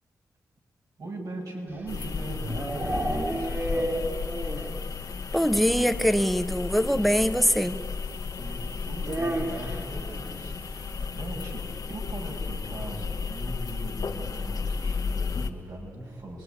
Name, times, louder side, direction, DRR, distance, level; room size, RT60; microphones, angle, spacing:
voice 1, 1.0-4.0 8.4-16.4, right 1 dB, 65° right, -1 dB, 7.5 m, -40 dB
sound 1, 1.8-4.8 5.1-5.2 5.5-5.6 5.8-6.0 7.2-7.3 9.0-9.9, right 1 dB, 35° right, 3.4 m, -31 dB
plumbing in tiny bathroom, 1.9-15.5, left 5 dB, 65° left, 1.7 m, -33 dB
voice 2, 5.3-7.8, equal, ahead, 9 dB, 1.3 m, -23 dB
27.5 x 21.5 x 9.8 m, 2.3 s
cardioid pair, 50°, 7 cm